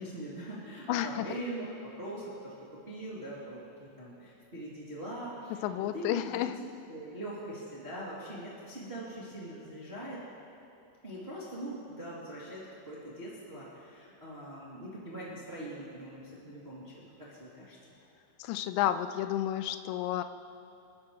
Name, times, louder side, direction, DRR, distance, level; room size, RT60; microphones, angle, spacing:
voice 1, 0.0-2.5 2.9-6.4 6.9-10.2 11.0-17.8, right 1 dB, 15° right, -8 dB, 2.3 m, -42 dB
voice 2, 0.9-1.3 5.6-6.6 18.4-20.2, left 12 dB, 85° left, 10 dB, 2.8 m, -31 dB
28.0 x 14.0 x 3.3 m, 2.9 s
omnidirectional pair, 5.4 m